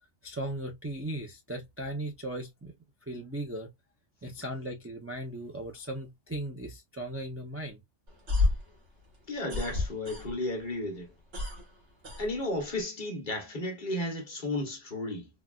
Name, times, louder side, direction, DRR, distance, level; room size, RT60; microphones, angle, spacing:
voice 1, 0.2-2.7 3.1-3.7 4.2-7.8, right 1 dB, 20° right, 0.3 m, -37 dB
sound 1, 8.1-10.6 10.9-12.8, left 3 dB, 90° right, 1.8 m, -31 dB
voice 2, 9.3-11.1 12.2-15.3, left 1 dB, 45° left, 1.1 m, -33 dB
3.8 x 2.3 x 2.3 m
omnidirectional pair, 1.2 m